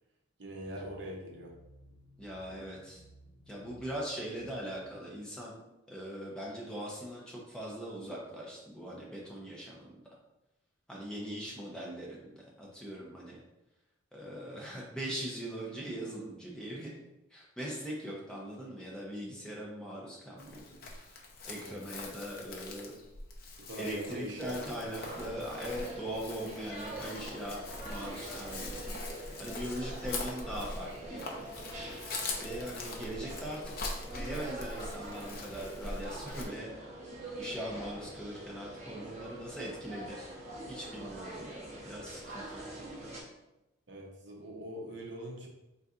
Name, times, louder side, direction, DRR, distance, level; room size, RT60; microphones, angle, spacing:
voice 1, 0.4-1.5 2.5-2.7 21.6-21.8 23.7-25.0 43.9-45.5, right 1 dB, 55° right, 0 dB, 0.7 m, -42 dB
sound 1, 0.6-4.8, equal, 80° left, 0.8 m, -58 dB
voice 2, 2.2-3.0 3.5-5.6 5.9-10.0 10.9-13.4 14.1-16.9 17.3-23.0 23.8-31.4 32.4-33.8 34.1-36.7 37.4-40.4 40.7-42.6, equal, 5° left, -5 dB, 0.7 m, -41 dB
Chirp tweet, 20.4-36.4, left 2 dB, 45° left, 0.6 m, -43 dB
sound 2, 25.0-43.2, right 1 dB, 35° right, 0.9 m, -44 dB
4.1 x 3.9 x 2.4 m, 0.93 s
head